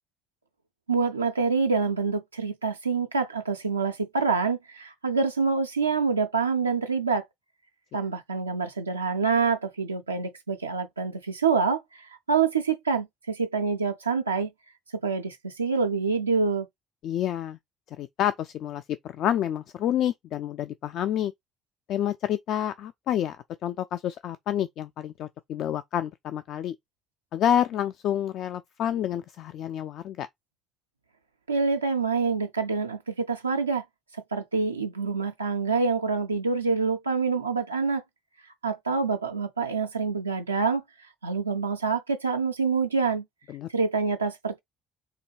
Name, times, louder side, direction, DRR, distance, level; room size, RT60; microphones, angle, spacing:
voice 1, 0.9-7.2 7.9-14.5 15.0-16.7 31.5-33.8 34.1-38.0 38.6-40.8 41.2-43.2 43.7-44.6, right 4 dB, 85° right, 0.3 m, -26 dB
voice 2, 17.0-17.6 18.0-21.3 21.9-23.4 23.6-26.8 27.3-30.3 43.5-43.7, left 10 dB, 55° left, 0.3 m, -28 dB
3.7 x 2.7 x 4.6 m
figure-of-eight pair, 50°, 0 cm